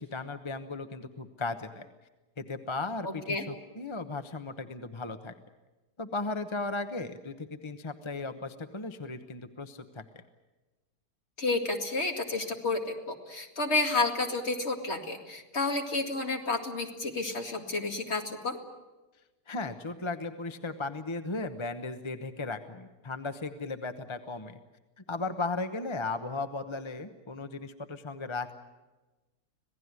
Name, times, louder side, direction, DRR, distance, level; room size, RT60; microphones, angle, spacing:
voice 1, 0.0-1.9 2.4-5.3 6.0-10.0 19.5-24.6 25.1-28.5, left 3 dB, 25° left, 8 dB, 0.8 m, -36 dB
voice 2, 3.0-3.5 11.4-18.6, left 3 dB, 40° left, 3 dB, 2.5 m, -31 dB
26.5 x 17.5 x 9.6 m, 1.2 s
omnidirectional pair, 1.7 m